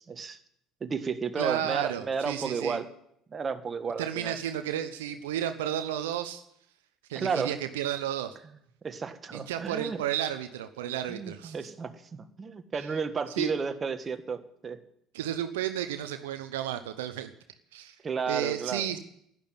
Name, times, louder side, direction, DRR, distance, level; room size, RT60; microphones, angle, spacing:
voice 1, 0.1-0.4 0.8-2.9 3.3-4.3 7.1-7.6 8.8-10.0 11.1-14.8 18.0-19.0, right 5 dB, 30° right, 9 dB, 1.5 m, -32 dB
voice 2, 1.4-2.8 4.0-6.4 7.1-8.4 9.3-11.5 13.4-13.5 15.1-17.3 17.7-18.0 18.3-19.0, right 11 dB, 75° right, 9 dB, 0.9 m, -32 dB
11.5 x 10.5 x 9.5 m, 0.73 s
hypercardioid pair, 60°, 0 cm